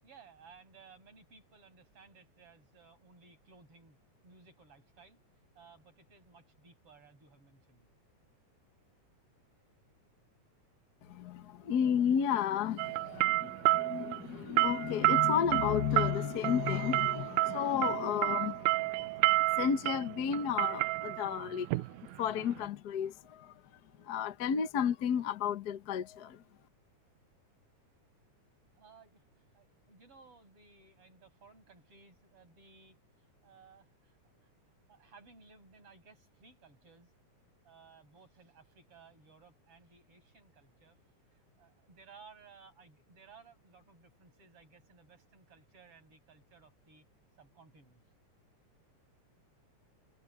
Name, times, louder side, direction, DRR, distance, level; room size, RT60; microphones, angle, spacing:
voice 1, 0.0-4.0 4.2-5.2 5.6-7.9 28.7-29.2 29.5-34.2 34.9-37.1 37.6-41.0 41.3-47.0 47.4-48.0, right 5 dB, 45° right, 7.9 m, -59 dB
voice 2, 11.1-21.7 22.2-23.5 24.0-26.4, left 8 dB, 70° left, 0.9 m, -32 dB
sound 1, 12.8-22.6, right 19 dB, 80° right, 2.0 m, -30 dB
omnidirectional pair, 3.5 m